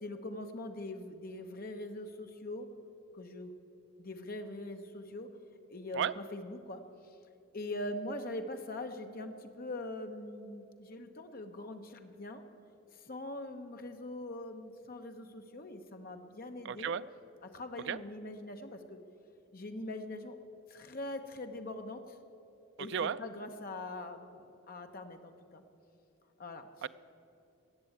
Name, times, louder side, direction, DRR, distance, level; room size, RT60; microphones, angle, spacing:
voice 1, 0.0-2.7 3.1-3.5 4.0-5.3 5.7-6.8 7.5-12.4 13.1-16.9 17.4-19.0 19.5-20.3 20.7-22.0 22.8-25.6 26.4-26.7, left 1 dB, 40° left, 6 dB, 0.9 m, -42 dB
voice 2, 16.6-17.0 17.9-18.0 22.9-23.2 26.8-26.9, right 7 dB, 55° right, 15 dB, 0.3 m, -33 dB
16.0 x 6.9 x 9.1 m, 2.7 s
head